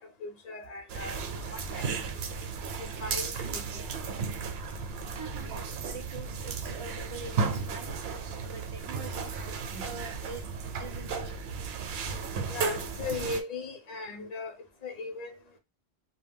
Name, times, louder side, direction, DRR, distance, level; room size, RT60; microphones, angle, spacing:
voice 1, 0.0-2.2 3.0-3.8 12.5-14.6 14.8-15.4, left 3 dB, 45° left, 0.6 m, -38 dB
sound 1, 0.9-13.4, right 5 dB, 70° right, 0.8 m, -34 dB
voice 2, 5.2-5.6 5.8-7.9 8.4-9.3 9.8-10.5 10.8-11.4, right 4 dB, 50° right, 0.4 m, -44 dB
2.2 x 2.2 x 3.3 m
omnidirectional pair, 1.1 m